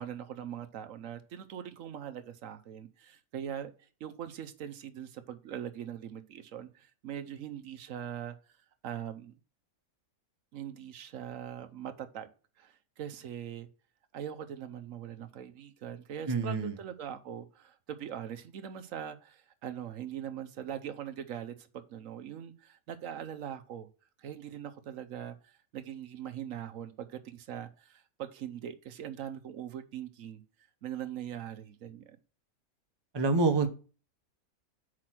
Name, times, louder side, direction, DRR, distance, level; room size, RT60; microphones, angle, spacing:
voice 1, 0.0-3.7 4.0-8.3 8.8-9.4 10.5-12.3 12.6-13.7 14.1-23.9 24.2-30.4 30.8-32.2, right 9 dB, 65° right, 1.0 m, -41 dB
voice 2, 16.3-16.8 33.1-33.7, right 3 dB, 25° right, 0.6 m, -26 dB
6.1 x 4.9 x 6.0 m
omnidirectional pair, 1.6 m